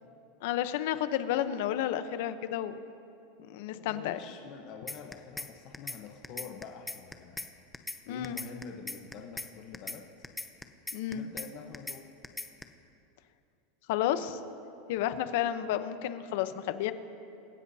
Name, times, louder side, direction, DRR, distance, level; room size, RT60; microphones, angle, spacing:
voice 1, 0.4-2.7 3.4-4.2 8.1-8.4 10.9-11.3 13.9-14.4 14.9-16.9, left 11 dB, 60° left, 11 dB, 0.8 m, -31 dB
voice 2, 3.7-7.4 8.1-10.0 11.1-12.0, left 6 dB, 40° left, 2 dB, 1.0 m, -46 dB
sound 1, 4.9-5.5 5.7-6.0 6.2-7.5 7.7-8.0 8.2-9.5 9.7-10.0 10.2-11.5 11.7-12.0 12.2-12.6, left 2 dB, 5° left, 0.6 m, -38 dB
27.0 x 15.5 x 2.8 m, 2.7 s
supercardioid pair, 160°, 0 cm